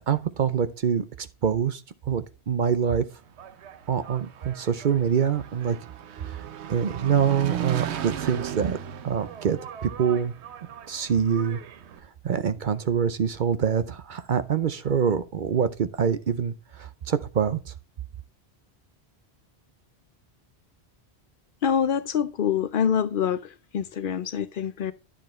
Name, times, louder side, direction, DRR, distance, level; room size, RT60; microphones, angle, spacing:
voice 1, 0.1-1.8 2.1-3.1 3.9-5.8 6.2-6.4 6.7-8.8 9.0-10.3 10.9-11.6 12.2-17.7, right 7 dB, 55° right, 0.7 m, -25 dB
Engine, 3.1-12.0, right 9 dB, 90° right, 1.0 m, -37 dB
voice 2, 21.6-24.9, left 8 dB, 60° left, 0.7 m, -26 dB
10.0 x 6.6 x 3.1 m
omnidirectional pair, 1.1 m